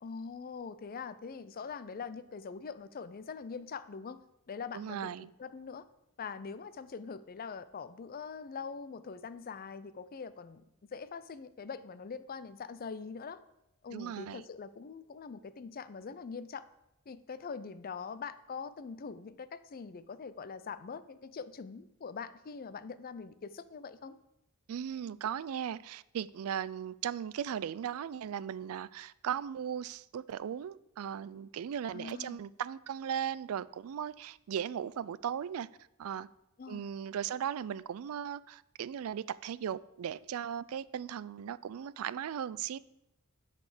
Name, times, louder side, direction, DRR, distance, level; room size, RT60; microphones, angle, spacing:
voice 1, 0.0-4.2 4.5-5.9 6.2-10.6 10.9-13.4 13.8-16.6 17.1-24.2 31.9-32.4 36.6-36.8, left 5 dB, 40° left, 0.5 m, -43 dB
voice 2, 4.7-5.3 13.9-14.4 24.7-35.7 36.0-36.3 36.7-42.8, right 9 dB, 70° right, 0.3 m, -37 dB
11.5 x 4.2 x 6.7 m
head